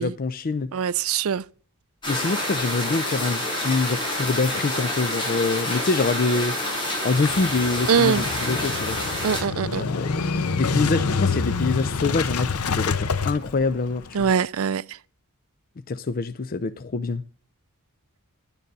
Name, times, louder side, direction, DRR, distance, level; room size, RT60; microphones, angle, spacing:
voice 1, 0.0-0.7 2.1-6.6 7.0-9.0 9.7-10.1 10.4-14.3 15.9-17.2, left 3 dB, 40° left, 0.5 m, -25 dB
voice 2, 0.7-1.4 7.9-8.3 9.2-9.8 14.1-14.8, right 7 dB, 70° right, 0.5 m, -22 dB
sound 1, 2.0-9.4, left 1 dB, 25° left, 5.4 m, -28 dB
Motorcycle / Engine starting, 7.1-14.3, left 4 dB, 85° left, 0.8 m, -27 dB
11.5 x 9.2 x 5.4 m
head